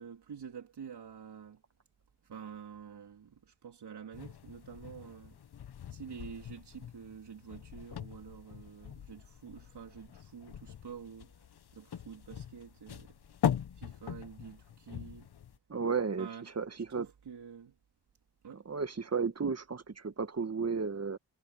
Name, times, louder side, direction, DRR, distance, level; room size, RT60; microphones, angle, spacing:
voice 1, 0.0-1.6 2.2-5.4 5.9-11.4 11.7-13.2 13.7-15.3 16.2-17.8 18.4-18.6, right 7 dB, 85° right, 3.5 m, -48 dB
sound 1, 4.1-15.6, left 9 dB, 75° left, 1.1 m, -41 dB
voice 2, 15.7-16.3 16.6-17.1 18.6-21.2, right 5 dB, 40° right, 1.6 m, -33 dB
cardioid pair, 60°, 39 cm